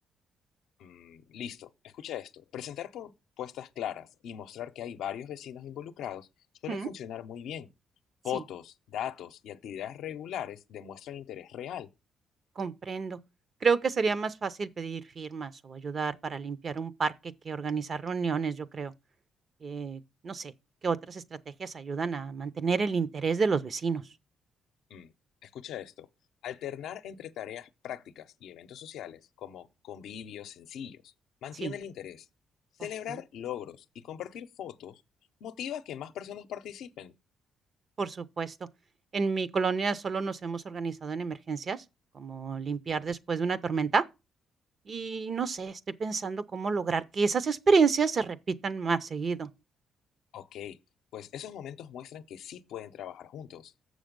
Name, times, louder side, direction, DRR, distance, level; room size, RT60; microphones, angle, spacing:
voice 1, 0.8-6.3 6.6-7.7 8.2-11.9 24.9-25.1 25.4-26.1 26.4-31.1 31.4-32.3 32.8-35.0 35.4-37.1 50.3-50.8 51.1-53.7, left 10 dB, 80° left, 0.6 m, -40 dB
voice 2, 12.6-13.2 13.6-17.1 17.4-18.9 19.6-20.5 20.8-21.2 21.6-24.0 31.6-31.7 38.0-38.5 39.1-41.8 42.1-44.0 44.9-49.5, right 5 dB, 45° right, 0.7 m, -29 dB
7.1 x 6.4 x 5.2 m
cardioid pair, 90°, 0 cm